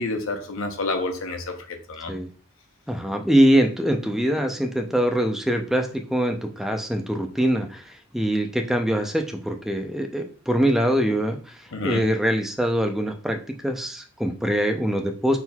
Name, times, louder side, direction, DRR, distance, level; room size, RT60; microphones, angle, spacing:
voice 1, 0.0-2.2 11.7-12.0, left 2 dB, 80° left, 6 dB, 0.7 m, -29 dB
voice 2, 2.9-15.4, equal, ahead, 4 dB, 0.4 m, -23 dB
4.4 x 3.8 x 2.2 m, 0.38 s
head